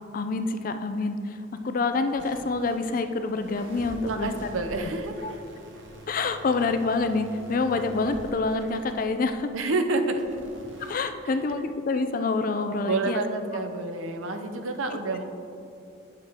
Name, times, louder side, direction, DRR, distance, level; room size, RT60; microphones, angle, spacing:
voice 1, 0.1-4.3 4.8-4.9 5.2-5.3 6.1-9.5 10.8-13.2, left 3 dB, 40° left, 8 dB, 0.4 m, -27 dB
sound 1, 2.1-9.5 10.1-11.0, right 1 dB, 65° right, 1.1 m, -45 dB
voice 2, 4.0-5.4 9.5-10.4 11.2-11.4 12.9-15.2, right 3 dB, 80° right, 6 dB, 0.7 m, -29 dB
8.5 x 6.5 x 3.6 m, 2.6 s
head